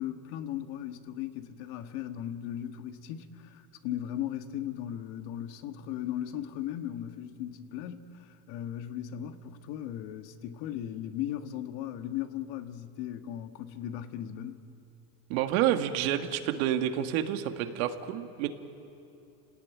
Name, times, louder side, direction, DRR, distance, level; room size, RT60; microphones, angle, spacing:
voice 1, 0.0-14.6, left 11 dB, 60° left, 7 dB, 1.7 m, -37 dB
voice 2, 15.3-18.5, right 11 dB, 80° right, 6 dB, 1.9 m, -29 dB
29.5 x 18.0 x 9.3 m, 2.9 s
cardioid pair, 155°, 42 cm